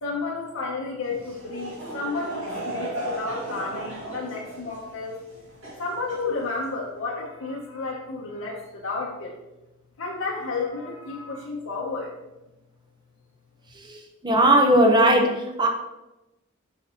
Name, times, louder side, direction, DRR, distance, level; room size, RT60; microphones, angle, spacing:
voice 1, 0.0-5.2 5.8-9.4 10.0-12.1, left 3 dB, 85° left, -2 dB, 0.8 m, -31 dB
Laughter / Crowd, 1.0-6.8, right 1 dB, 70° right, 2.2 m, -36 dB
voice 2, 14.2-15.7, right 1 dB, 20° right, 2 dB, 0.9 m, -18 dB
6.7 x 5.9 x 2.9 m, 0.99 s
head